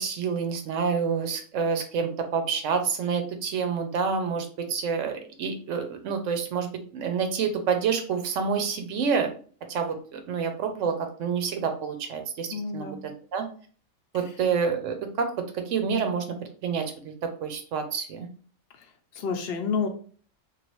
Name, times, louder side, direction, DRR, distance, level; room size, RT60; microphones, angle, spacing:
voice 1, 0.0-6.7 6.9-9.3 9.7-13.0 13.3-13.5 14.1-15.3 15.7-16.2 16.6-17.1 17.4-18.3, right 6 dB, 75° right, 6 dB, 0.9 m, -28 dB
voice 2, 12.5-13.1 18.7-18.9 19.1-19.9, left 5 dB, 65° left, 5 dB, 0.7 m, -29 dB
3.1 x 2.4 x 3.0 m, 0.43 s
omnidirectional pair, 1.3 m